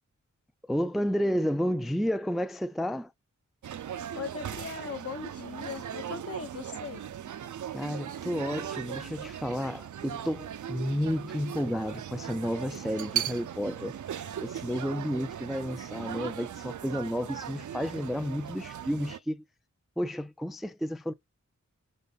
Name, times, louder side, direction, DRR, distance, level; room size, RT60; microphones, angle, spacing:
voice 1, 0.7-3.1 7.7-14.0 14.4-19.4 20.0-21.1, equal, ahead, 0.4 m, -31 dB
sound 1, 3.6-19.2, right 9 dB, 75° right, 0.6 m, -38 dB
voice 2, 4.1-7.0, left 5 dB, 50° left, 1.1 m, -39 dB
5.3 x 5.0 x 4.0 m
cardioid pair, 55°, 30 cm